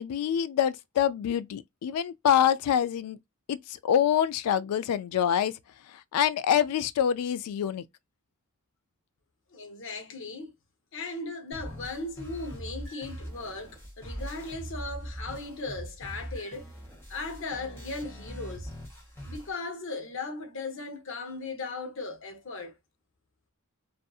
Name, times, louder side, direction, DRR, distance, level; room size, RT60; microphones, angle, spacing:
voice 1, 0.0-3.2 3.5-5.5 6.1-7.8, left 9 dB, 85° left, 0.3 m, -26 dB
voice 2, 9.5-10.5 10.9-16.7 17.1-18.7 19.3-22.7, left 3 dB, 60° left, 0.8 m, -37 dB
sound 1, 11.5-19.5, equal, 10° left, 1.0 m, -41 dB
2.6 x 2.5 x 2.3 m
head